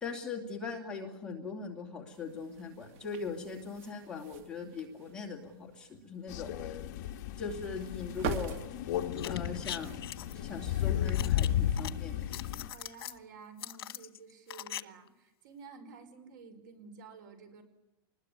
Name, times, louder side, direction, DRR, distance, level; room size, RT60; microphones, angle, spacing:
voice 1, 0.0-6.8 7.4-8.6 9.2-10.1 10.3-12.4, left 5 dB, 5° left, -2 dB, 2.5 m, -40 dB
sound 1, 2.1-13.3, right 4 dB, 40° right, 2.2 m, -46 dB
Crow, 6.3-12.7, left 11 dB, 45° left, 1.3 m, -34 dB
sound 2, 9.1-10.3 11.1-11.9 12.2-13.2 13.6-14.8 15.1-15.2, left 12 dB, 85° left, 1.2 m, -41 dB
voice 2, 12.7-17.6, right 5 dB, 55° right, 9 dB, 5.1 m, -52 dB
27.0 x 20.5 x 9.7 m, 0.92 s
supercardioid pair, 175°, 12 cm